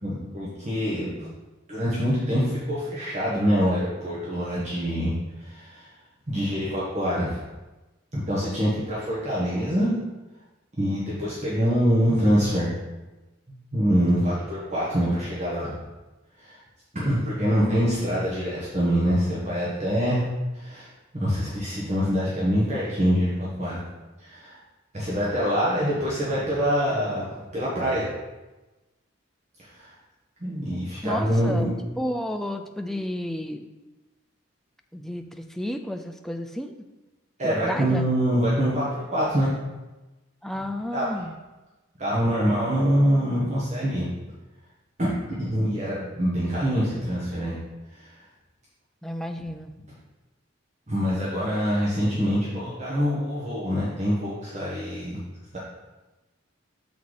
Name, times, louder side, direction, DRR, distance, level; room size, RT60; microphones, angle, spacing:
voice 1, 0.0-1.3 1.7-5.1 5.4-5.9 6.3-7.4 8.1-9.9 10.8-12.7 13.5-15.8 16.4-16.6 16.9-20.3 20.5-20.9 21.1-23.8 24.2-24.6 24.9-27.3 27.5-28.1 29.6-29.9 30.4-31.8 37.4-39.5 40.9-41.0 42.0-44.1 45.0-45.1 45.4-47.5 47.9-48.1 50.9-55.2, equal, 35° right, -8 dB, 1.3 m, -25 dB
voice 2, 14.1-14.5 31.0-31.7 32.0-33.7 34.9-36.8 37.4-38.1 40.4-41.3 49.0-49.7, left 1 dB, ahead, 5 dB, 0.3 m, -32 dB
6.9 x 4.0 x 4.9 m, 1.1 s
head